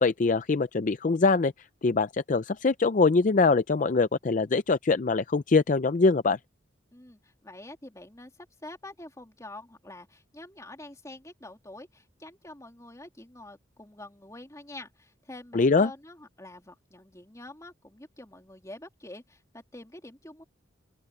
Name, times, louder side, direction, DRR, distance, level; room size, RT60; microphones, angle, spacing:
voice 1, 0.0-1.5 1.8-6.4 15.5-15.9, left 4 dB, 45° left, 0.5 m, -23 dB
voice 2, 6.9-20.4, left 2 dB, 15° left, 3.2 m, -46 dB
open air
head